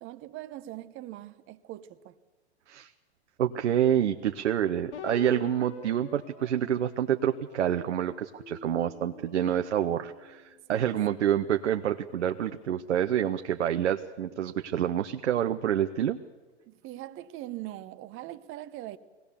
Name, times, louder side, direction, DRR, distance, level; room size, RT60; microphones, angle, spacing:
voice 1, 0.0-2.2 10.7-11.0 16.6-19.0, right 15 dB, 35° right, 1.0 m, -41 dB
voice 2, 3.4-16.2, right 10 dB, 85° right, 0.9 m, -27 dB
sound 1, 4.9-7.6 8.2-10.7, left 5 dB, 80° left, 1.7 m, -47 dB
21.5 x 18.0 x 7.0 m
hypercardioid pair, 115°, 34 cm